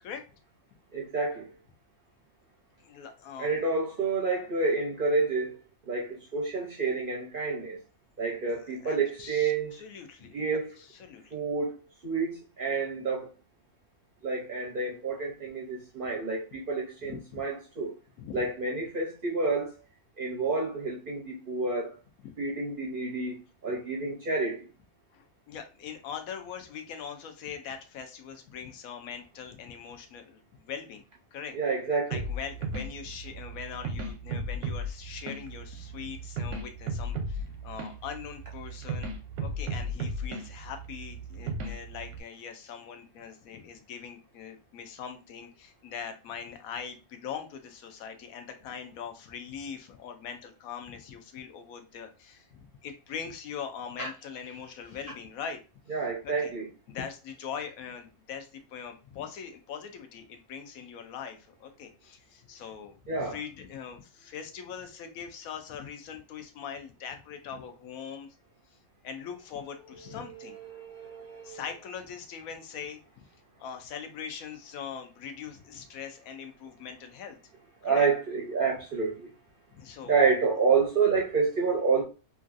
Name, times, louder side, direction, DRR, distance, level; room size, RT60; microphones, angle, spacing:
voice 1, 0.9-1.5 3.4-5.6 5.9-7.8 8.2-9.7 10.3-10.7 11.3-11.7 12.0-13.3 14.2-17.9 18.3-19.7 20.2-21.9 22.4-23.4 23.6-24.7 31.5-32.2 54.0-54.1 55.9-56.7 63.1-63.4 70.5-71.6 77.8-79.3 80.1-82.0, right 4 dB, 55° right, 0.6 m, -29 dB
voice 2, 2.8-3.5 8.5-9.5 9.8-10.3 10.8-11.4 17.0-17.4 18.2-18.5 22.2-22.3 25.1-30.4 30.7-31.0 31.3-31.5 32.1-39.1 39.4-55.6 56.2-56.5 56.9-68.3 69.0-70.6 71.4-73.0 73.6-77.4 77.8-78.1 79.7-80.1, left 7 dB, 75° left, 1.0 m, -41 dB
sound 1, 32.1-42.2, right 2 dB, 90° right, 1.1 m, -35 dB
3.0 x 2.5 x 2.4 m
omnidirectional pair, 1.5 m